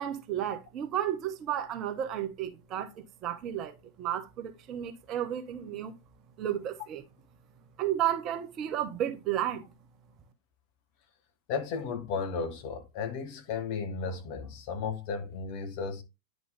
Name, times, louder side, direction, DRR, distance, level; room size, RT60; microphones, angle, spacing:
voice 1, 0.0-2.9 3.2-5.9 6.4-7.0 7.8-9.6, right 11 dB, 35° right, 1.0 m, -32 dB
voice 2, 11.5-16.0, left 5 dB, 45° left, 1.5 m, -34 dB
10.0 x 3.9 x 3.4 m
figure-of-eight pair, 90°, 0 cm